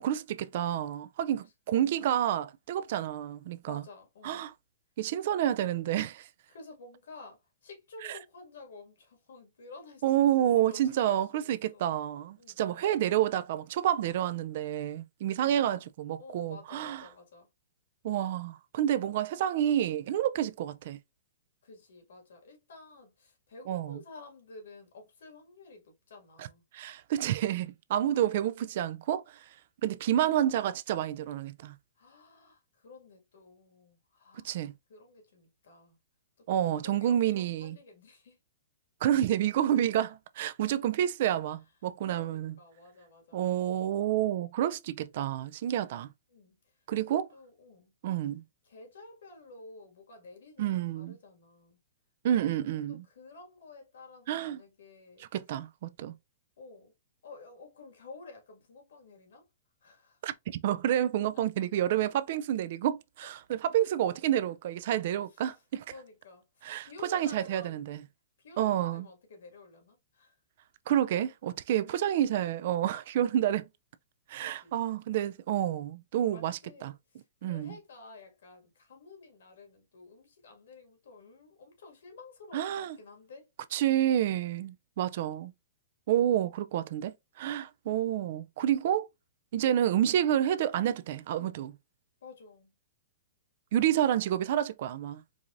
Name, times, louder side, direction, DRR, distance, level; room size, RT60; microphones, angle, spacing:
voice 1, 0.0-3.8 4.2-4.5 5.0-6.3 8.0-8.2 10.0-17.1 18.0-21.0 23.7-24.0 26.4-26.5 26.7-29.4 29.8-31.8 34.4-34.7 36.5-37.8 39.0-42.6 43.3-46.1 46.9-47.3 48.0-48.4 50.6-51.2 52.2-53.0 54.3-54.6 55.2-56.1 60.2-65.8 66.6-68.0 68.6-69.1 70.9-73.6 74.3-76.9 77.4-77.7 82.5-83.0 83.7-85.5 86.1-89.1 89.5-91.8 93.7-95.2, right 11 dB, 50° right, 0.3 m, -29 dB
voice 2, 3.7-4.4 6.5-10.0 10.7-11.9 12.4-12.8 15.4-15.6 16.2-17.5 21.6-26.6 32.0-36.0 36.5-38.4 42.1-43.7 46.3-46.6 47.0-47.9 48.7-51.8 52.3-55.3 56.6-56.9 57.2-59.4 59.8-60.2 65.9-66.4 66.8-68.0 68.4-70.3 74.4-74.8 76.3-76.9 77.4-83.5 92.2-92.7, left 3 dB, 80° left, 1.9 m, -51 dB
4.6 x 2.5 x 2.5 m
hypercardioid pair, 160°, 0 cm